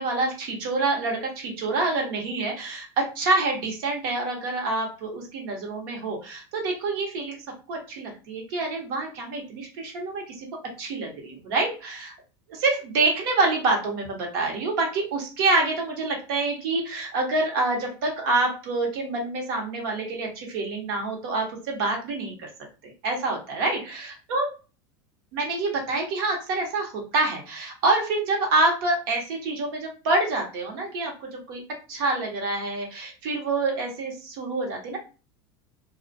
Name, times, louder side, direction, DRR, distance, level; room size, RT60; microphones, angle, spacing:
voice 1, 0.0-7.4 7.7-10.5 10.8-12.1 12.5-22.5 23.0-24.5 25.3-31.6 31.9-35.0, right 2 dB, 70° right, 1 dB, 1.0 m, -27 dB
2.3 x 2.1 x 2.6 m, 0.33 s
supercardioid pair, 110°, 12 cm